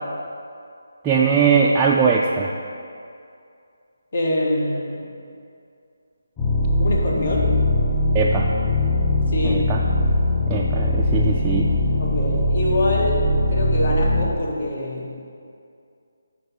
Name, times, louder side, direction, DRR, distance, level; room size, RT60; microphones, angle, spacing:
voice 1, 1.0-2.5 8.1-8.5 9.4-9.8 10.5-11.7, right 5 dB, 15° right, -4 dB, 0.4 m, -20 dB
voice 2, 4.1-5.1 6.8-7.6 9.3-9.7 12.0-15.1, left 1 dB, 55° left, -2 dB, 1.7 m, -24 dB
sound 1, 6.4-14.2, left 1 dB, 25° left, 2.0 m, -21 dB
10.5 x 4.6 x 4.3 m, 2.4 s
figure-of-eight pair, 155°, 0 cm